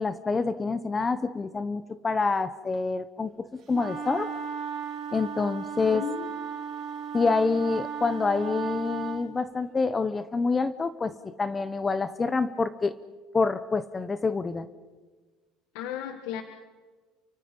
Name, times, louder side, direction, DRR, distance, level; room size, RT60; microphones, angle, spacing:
voice 1, 0.0-4.3 5.1-6.0 7.1-12.9 13.3-14.7, left 4 dB, 20° left, 13 dB, 0.8 m, -27 dB
sound 1, 3.7-9.2, right 7 dB, 60° right, 4.9 m, -35 dB
voice 2, 5.9-6.3 15.7-16.4, left 10 dB, 80° left, 7 dB, 1.5 m, -34 dB
29.5 x 24.0 x 5.3 m, 1.4 s
cardioid pair, 150°, 0 cm